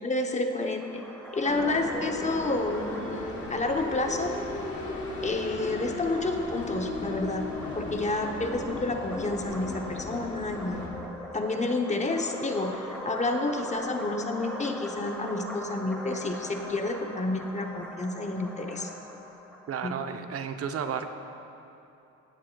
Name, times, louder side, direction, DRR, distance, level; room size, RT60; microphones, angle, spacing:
voice 1, 0.0-1.0 1.3-4.4 5.2-7.5 7.8-10.9 11.3-18.9 19.8-19.9, left 2 dB, 25° left, 4 dB, 0.8 m, -30 dB
sound 1, 0.8-20.1, left 1 dB, 5° left, 2.1 m, -42 dB
sound 2, 1.5-10.9, left 2 dB, 45° left, 2.1 m, -36 dB
voice 2, 19.7-21.1, right 7 dB, 50° right, 7 dB, 0.7 m, -32 dB
17.0 x 7.4 x 2.3 m, 2.9 s
cardioid pair, 90°, 30 cm